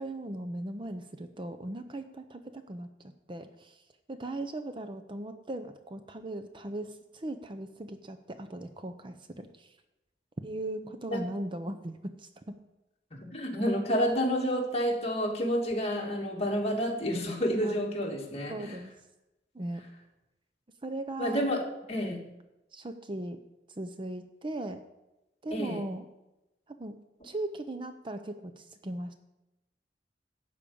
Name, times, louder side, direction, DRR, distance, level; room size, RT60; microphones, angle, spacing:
voice 1, 0.0-3.8 4.1-9.7 10.4-12.5 17.6-17.8 18.5-18.9 19.5-19.8 20.8-21.4 21.9-22.1 22.7-23.4 23.8-24.8 25.4-26.0 26.7-26.9 27.2-29.1, right 1 dB, 30° right, 9 dB, 0.6 m, -38 dB
voice 2, 13.1-18.8 21.2-22.2 25.5-25.8, equal, 35° left, -1 dB, 2.2 m, -29 dB
12.0 x 5.1 x 8.5 m, 0.96 s
head